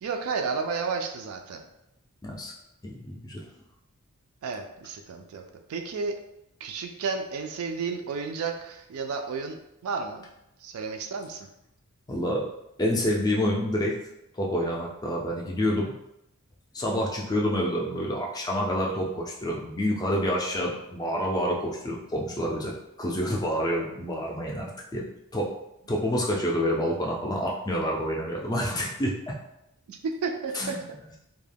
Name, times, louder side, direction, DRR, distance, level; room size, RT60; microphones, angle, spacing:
voice 1, 0.0-1.6 4.4-5.4 5.7-6.2 6.6-10.3 10.6-11.5 29.9-30.8, right 5 dB, 70° right, 4 dB, 0.3 m, -32 dB
voice 2, 2.8-3.5 12.1-12.5 12.8-14.0 14.3-15.9 16.7-22.7 23.0-25.0 25.3-25.5 25.9-29.4 30.5-30.8, equal, 15° left, -2 dB, 0.3 m, -28 dB
2.2 x 2.1 x 3.3 m, 0.84 s
head